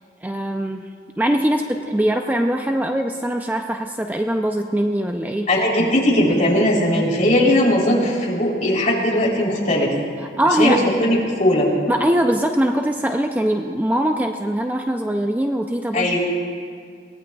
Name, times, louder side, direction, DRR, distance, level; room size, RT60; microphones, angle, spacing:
voice 1, 0.2-0.8 1.2-5.5 10.2-10.9 11.9-16.2, right 1 dB, 10° right, 3 dB, 0.4 m, -22 dB
voice 2, 5.5-9.9 10.6-11.7 15.9-16.2, left 1 dB, 45° left, -3 dB, 3.4 m, -18 dB
23.0 x 18.5 x 2.3 m, 2.1 s
head